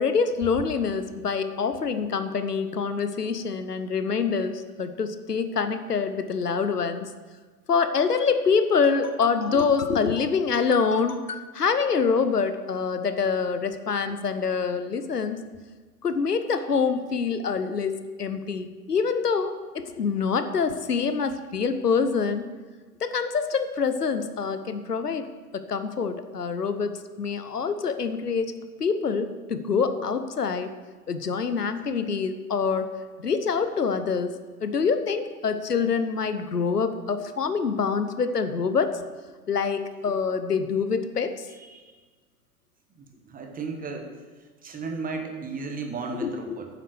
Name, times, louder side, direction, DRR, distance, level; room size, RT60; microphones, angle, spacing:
voice 1, 0.0-7.1 7.7-15.4 16.0-22.5 23.0-25.3 25.5-28.5 28.8-30.8 31.1-32.9 33.2-34.3 34.6-39.0 39.5-41.5 46.2-46.6, left 5 dB, 85° left, 10 dB, 0.8 m, -25 dB
voice 2, 43.3-44.1 44.6-46.7, right 4 dB, 20° right, 4 dB, 1.4 m, -33 dB
9.3 x 7.5 x 6.6 m, 1.4 s
figure-of-eight pair, 90°, 46 cm